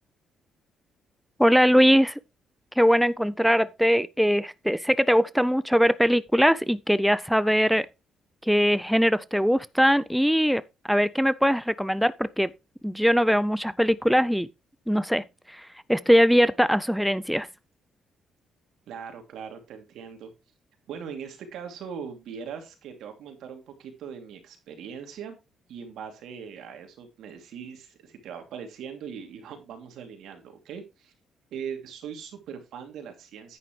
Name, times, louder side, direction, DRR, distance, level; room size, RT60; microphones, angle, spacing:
voice 1, 1.4-2.2 2.8-7.9 8.4-12.5 12.8-14.5 14.9-17.5, equal, ahead, 0.4 m, -21 dB
voice 2, 18.9-20.3 20.9-25.4 25.7-31.1 31.5-33.6, right 7 dB, 80° right, 2.7 m, -40 dB
9.8 x 9.5 x 3.2 m
cardioid pair, 90°, 0 cm